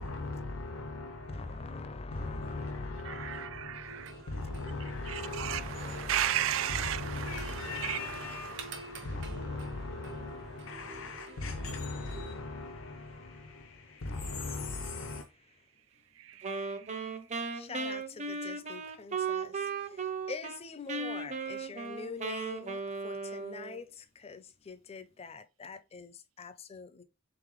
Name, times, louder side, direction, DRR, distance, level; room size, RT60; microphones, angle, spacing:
voice 1, 0.0-6.2 6.7-15.3, left 3 dB, 80° left, 0.6 m, -39 dB
voice 2, 1.3-4.3 5.4-7.7 13.2-14.0 17.5-27.0, left 4 dB, 30° left, 0.4 m, -45 dB
voice 3, 3.0-4.1 5.0-8.8 16.1-17.2, right 11 dB, 85° right, 0.4 m, -35 dB
sound 1, 3.9-12.3, right 3 dB, 65° right, 1.0 m, -48 dB
Wind instrument woodwind instrument, 16.4-20.6 20.9-23.8, right 4 dB, 35° right, 0.6 m, -36 dB
3.9 x 3.5 x 3.1 m
head